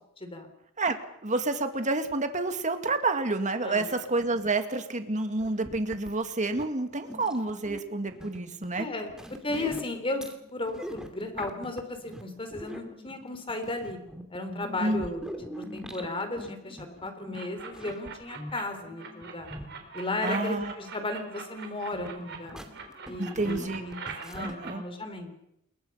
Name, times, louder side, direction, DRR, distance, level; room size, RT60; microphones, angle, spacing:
voice 1, 1.2-8.9 14.8-15.1 20.2-20.7 23.2-23.8 24.4-24.8, right 2 dB, 35° right, 7 dB, 2.1 m, -29 dB
sound 1, 5.4-19.9 21.8-24.6, equal, 5° right, 2.5 m, -43 dB
voice 2, 8.7-9.1 9.4-10.2 10.5-14.0 14.3-19.5 19.9-22.6 23.1-23.9 24.2-25.3, left 2 dB, 25° left, 7 dB, 3.8 m, -35 dB
sound 2, 17.3-18.6 19.0-22.4 22.7-24.7, right 5 dB, 55° right, 4.0 m, -41 dB
28.5 x 22.0 x 5.7 m, 0.77 s
head